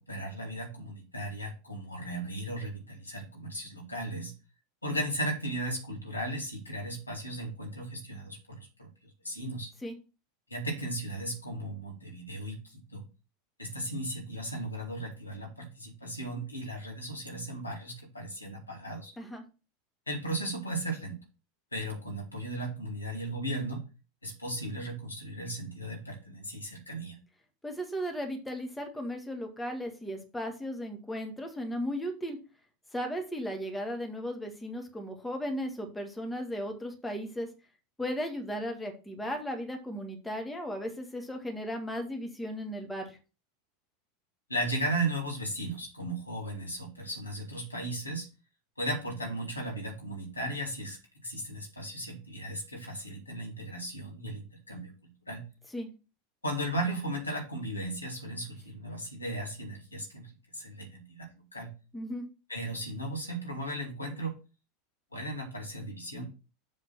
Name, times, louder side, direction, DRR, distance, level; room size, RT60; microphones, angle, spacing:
voice 1, 0.1-4.3 4.8-8.9 9.2-9.7 10.5-13.0 13.6-19.1 20.1-21.2 21.7-23.8 24.2-27.2 44.5-48.3 48.8-55.5 56.4-61.7 62.5-64.3 65.1-66.2, right 1 dB, 85° left, 0 dB, 2.3 m, -36 dB
voice 2, 27.6-32.4 32.9-37.5 38.0-43.2 55.7-55.9 61.9-62.2, equal, 5° left, 2 dB, 1.7 m, -36 dB
7.5 x 3.9 x 6.0 m, 0.32 s
figure-of-eight pair, 80°, 0 cm